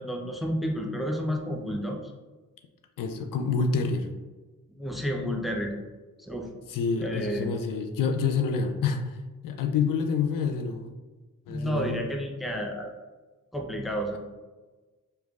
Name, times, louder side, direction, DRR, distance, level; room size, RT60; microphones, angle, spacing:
voice 1, 0.0-2.0 4.7-5.7 6.2-6.5 7.0-7.5 11.5-12.9 13.5-14.2, equal, ahead, 1 dB, 0.5 m, -30 dB
voice 2, 3.0-4.1 6.7-9.2 9.4-10.9 11.5-12.0, left 5 dB, 65° left, 5 dB, 0.5 m, -27 dB
3.3 x 3.0 x 2.4 m, 1.2 s
cardioid pair, 60°, 35 cm